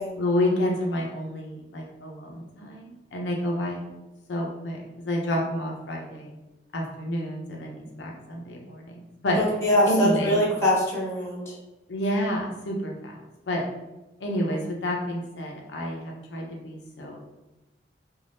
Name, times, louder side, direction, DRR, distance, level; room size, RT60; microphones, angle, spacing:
voice 1, 0.1-3.8 4.3-6.3 6.7-9.4 9.9-10.4 11.9-13.2 13.5-13.7 14.2-17.2, left 1 dB, 80° left, 0 dB, 0.5 m, -29 dB
voice 2, 9.4-11.5, equal, 15° left, -7 dB, 0.9 m, -23 dB
2.6 x 2.2 x 3.3 m, 1.0 s
head